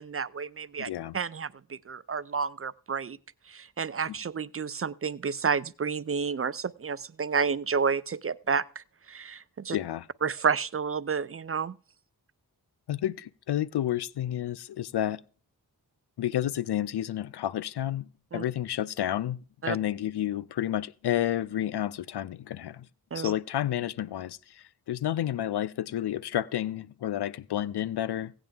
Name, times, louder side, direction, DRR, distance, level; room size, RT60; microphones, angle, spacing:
voice 1, 0.0-3.2 3.5-9.8 10.2-11.8 18.3-18.4 19.6-19.8 23.1-23.3, right 6 dB, 35° right, 0.4 m, -30 dB
voice 2, 0.8-1.2 9.7-10.1 12.9-15.2 16.2-18.1 18.3-22.9 23.1-28.3, left 12 dB, 80° left, 0.5 m, -30 dB
16.0 x 9.0 x 3.4 m
cardioid pair, 50°, 39 cm